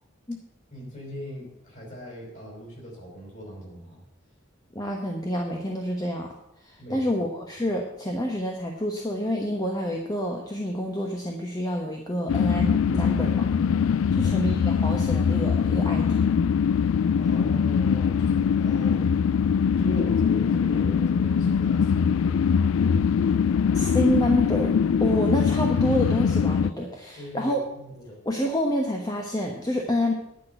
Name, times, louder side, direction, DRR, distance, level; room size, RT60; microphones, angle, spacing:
voice 1, 0.7-4.0 6.8-7.0 14.2-14.5 17.2-22.4 27.2-28.2, equal, 40° left, -2 dB, 5.0 m, -39 dB
voice 2, 4.7-6.3 6.6-13.5 14.1-16.3 23.7-24.7 25.0-27.6 28.2-30.1, equal, 20° left, 0 dB, 1.1 m, -28 dB
sound 1, 12.3-26.7, left 6 dB, 80° left, 0.3 m, -22 dB
10.5 x 6.2 x 8.9 m, 0.82 s
head